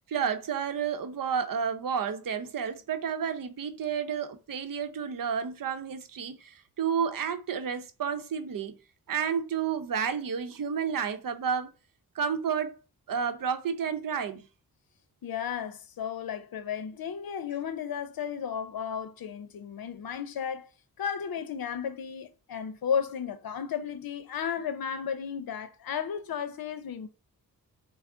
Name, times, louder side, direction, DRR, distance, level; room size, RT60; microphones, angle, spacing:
voice 1, 0.1-8.8 9.1-11.7 12.1-12.8 13.1-14.5, right 7 dB, 60° right, 0.7 m, -31 dB
voice 2, 15.2-20.7 21.0-27.1, left 7 dB, 70° left, 0.7 m, -34 dB
5.9 x 2.0 x 3.8 m
wide cardioid pair, 105°, 37 cm